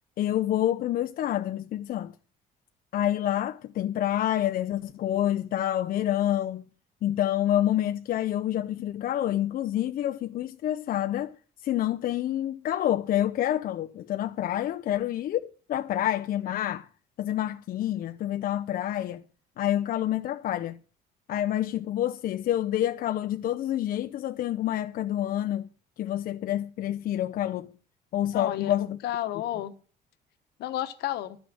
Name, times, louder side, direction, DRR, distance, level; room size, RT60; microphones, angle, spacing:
voice 1, 0.2-2.1 2.9-6.7 7.0-11.4 11.6-16.9 17.2-19.2 19.6-20.8 21.3-25.7 26.0-27.7 28.1-29.0, left 12 dB, 55° left, 0.5 m, -28 dB
voice 2, 28.3-29.7 30.6-31.4, left 13 dB, 75° left, 1.2 m, -32 dB
12.0 x 6.1 x 9.2 m
cardioid pair, 110°, 17 cm